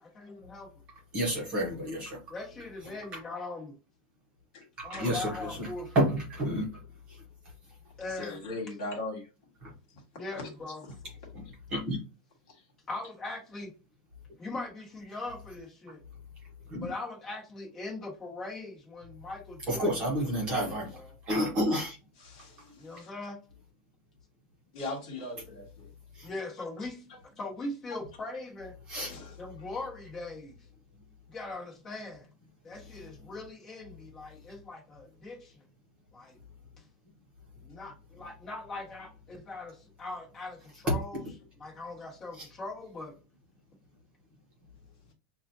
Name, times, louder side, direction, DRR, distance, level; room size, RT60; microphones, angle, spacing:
voice 1, 0.1-0.7 2.3-3.7 4.8-5.9 8.0-8.4 10.1-10.8 12.9-13.7 14.4-16.0 16.8-20.7 21.0-21.1 22.8-23.4 26.2-27.0 27.4-28.8 29.4-30.5 31.3-32.3 32.6-35.6 36.1-36.4 37.6-41.2 41.6-43.1, left 2 dB, 15° left, 1.5 m, -40 dB
voice 2, 1.1-2.2 3.1-3.2 4.8-6.7 7.1-7.2 9.6-9.7 11.3-11.4 11.7-12.0 16.7-16.9 19.7-21.0 21.3-22.0 22.7-22.8 26.1-26.3 28.9-29.2 42.4-42.5, equal, 25° right, 1.1 m, -30 dB
voice 3, 8.1-9.3 22.2-23.1 24.7-25.9 29.1-29.3, left 2 dB, 50° left, 1.7 m, -39 dB
6.0 x 2.5 x 2.7 m
supercardioid pair, 180°, 5 cm